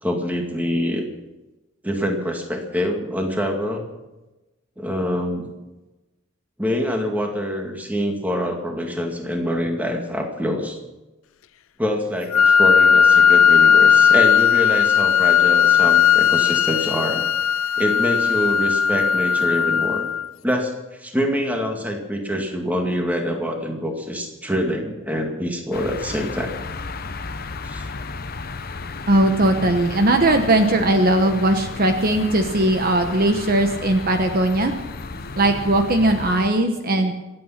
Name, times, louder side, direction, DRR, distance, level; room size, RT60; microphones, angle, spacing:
voice 1, 0.0-1.0 1.8-3.8 4.8-5.5 6.6-10.8 11.8-17.2 17.8-20.1 20.4-26.5 27.6-27.9 36.9-37.0, equal, 5° right, 2 dB, 2.1 m, -25 dB
Wind instrument woodwind instrument, 12.3-20.3, left 7 dB, 70° left, 0.5 m, -16 dB
sound 1, 25.7-36.5, left 3 dB, 45° left, 0.8 m, -33 dB
voice 2, 29.1-34.7 35.4-37.1, right 1 dB, 45° right, 6 dB, 1.1 m, -19 dB
26.5 x 8.9 x 5.9 m, 1.1 s
head